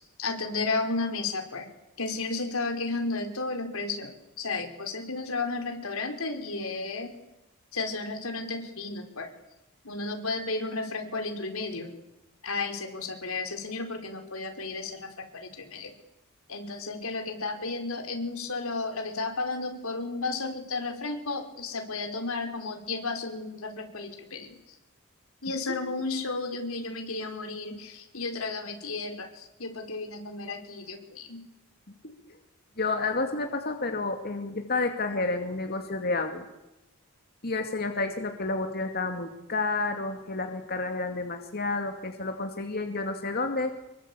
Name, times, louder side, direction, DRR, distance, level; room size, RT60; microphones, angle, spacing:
voice 1, 0.0-1.7 2.0-4.1 4.4-7.1 7.7-9.3 9.8-11.9 12.4-15.9 16.5-24.5 25.4-31.4, left 3 dB, 85° left, 4 dB, 4.7 m, -33 dB
voice 2, 32.8-36.5 37.4-43.7, left 3 dB, 50° left, 5 dB, 2.4 m, -30 dB
26.0 x 23.0 x 8.6 m, 0.94 s
head